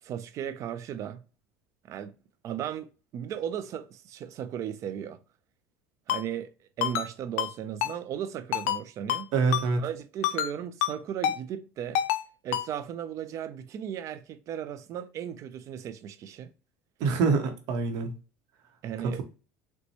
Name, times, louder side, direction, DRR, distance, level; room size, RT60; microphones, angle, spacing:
voice 1, 0.0-1.2 1.9-2.1 2.4-5.2 6.1-9.3 9.8-12.0 12.4-16.5 18.8-19.2, right 9 dB, 50° right, 0.4 m, -36 dB
Ringtone, 6.1-6.2 6.8-7.1 7.4-7.5 7.8-7.9 8.5-8.8 9.1-9.2 9.5-9.7 10.2-10.5 10.8-10.9 11.2-11.4 11.9-12.2 12.5-12.7, left 11 dB, 80° left, 0.4 m, -27 dB
voice 2, 9.3-9.8 17.0-18.1 19.0-19.2, right 4 dB, 65° right, 0.8 m, -25 dB
4.0 x 2.2 x 2.9 m
supercardioid pair, 90°, 7 cm